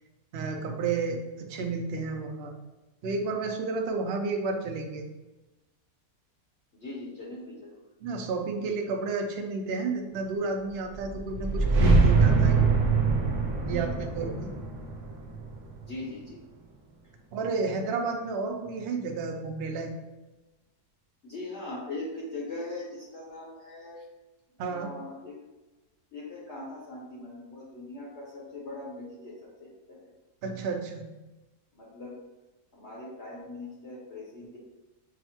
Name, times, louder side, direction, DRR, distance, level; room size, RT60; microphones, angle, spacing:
voice 1, 0.3-2.5 3.0-5.0 8.0-12.6 13.7-14.5 17.3-19.9 24.6-24.9 30.4-31.1, right 4 dB, 90° right, 3 dB, 0.5 m, -31 dB
voice 2, 6.8-7.8 13.7-13.9 15.8-16.4 21.2-24.0 24.7-25.3 26.1-30.1 31.7-32.2 32.7-34.6, left 2 dB, 50° left, -5 dB, 1.0 m, -40 dB
sound 1, 11.1-16.2, right 4 dB, 65° right, 1.1 m, -24 dB
6.2 x 2.1 x 2.8 m, 1.1 s
omnidirectional pair, 1.7 m